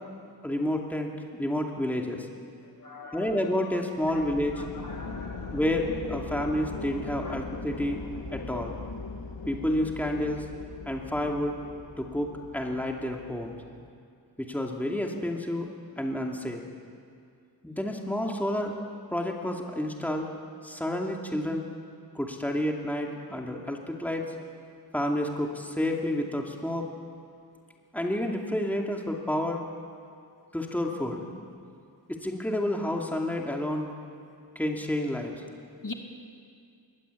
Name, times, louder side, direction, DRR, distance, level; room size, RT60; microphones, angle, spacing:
voice 1, 0.4-2.3 3.1-4.7 5.5-8.0 8.3-8.7 9.5-10.5 10.9-11.6 12.0-13.6 14.4-16.6 17.6-18.8 19.1-20.3 20.6-21.6 22.1-24.3 24.9-26.9 27.9-29.7 30.5-31.3 32.1-33.9 34.5-35.4, left 1 dB, 5° left, 1 dB, 2.7 m, -30 dB
voice 2, 2.8-3.4 4.5-5.6 7.2-7.3 35.8-35.9, left 3 dB, 50° left, 3 dB, 2.3 m, -41 dB
sound 1, 4.0-13.9, left 4 dB, 85° left, 1.9 m, -40 dB
22.0 x 19.5 x 8.5 m, 2.3 s
wide cardioid pair, 65°, 41 cm